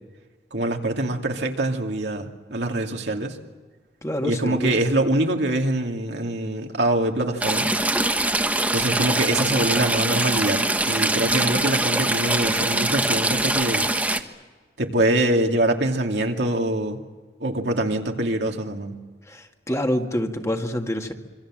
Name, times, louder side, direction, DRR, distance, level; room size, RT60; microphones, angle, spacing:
voice 1, 0.5-3.4 4.2-7.7 8.7-13.9 14.8-17.0 17.4-19.0, right 1 dB, 80° right, 2 dB, 2.5 m, -24 dB
voice 2, 4.0-4.8 19.3-21.1, equal, 20° left, 4 dB, 1.9 m, -26 dB
Stream / Trickle dribble, 7.4-14.2, right 2 dB, 10° right, 1.3 m, -23 dB
26.5 x 25.0 x 7.6 m, 1.4 s
head